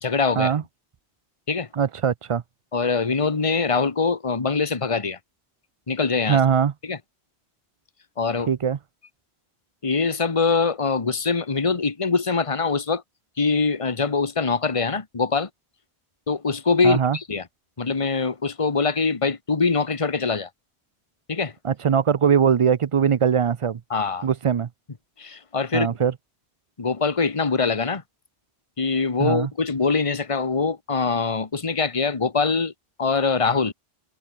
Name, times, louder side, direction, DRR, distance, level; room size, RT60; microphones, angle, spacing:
voice 1, 0.0-0.5 1.5-1.7 2.7-5.2 5.9-6.4 6.8-7.0 8.2-8.5 9.8-13.0 13.4-15.5 16.3-17.4 17.8-20.5 21.3-21.5 23.9-24.3 25.2-25.9 26.8-28.0 28.8-32.7 33.0-33.7, left 4 dB, 30° left, 1.4 m, -23 dB
voice 2, 1.7-2.4 6.3-6.7 8.5-8.8 16.8-17.2 21.6-23.8 24.2-24.7 25.7-26.1 29.2-29.5, right 7 dB, 50° right, 0.4 m, -21 dB
omnidirectional pair, 1.1 m